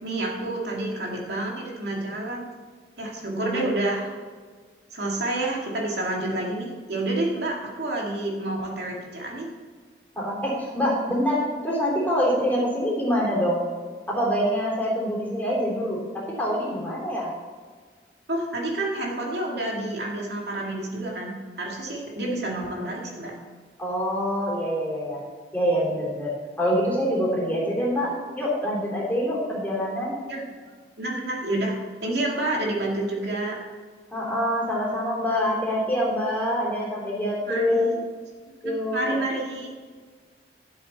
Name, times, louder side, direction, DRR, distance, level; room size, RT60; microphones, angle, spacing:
voice 1, 0.0-2.4 3.0-4.3 4.9-9.5 18.3-23.3 30.3-30.5 31.0-31.8 32.0-33.6 37.5-38.0 38.6-39.7, right 2 dB, 75° right, -2 dB, 2.3 m, -29 dB
voice 2, 3.3-3.6 10.2-13.6 14.1-17.3 23.8-25.2 25.5-30.2 34.1-37.9 38.6-39.2, equal, 10° left, -5 dB, 3.4 m, -25 dB
12.0 x 7.9 x 4.2 m, 1.6 s
head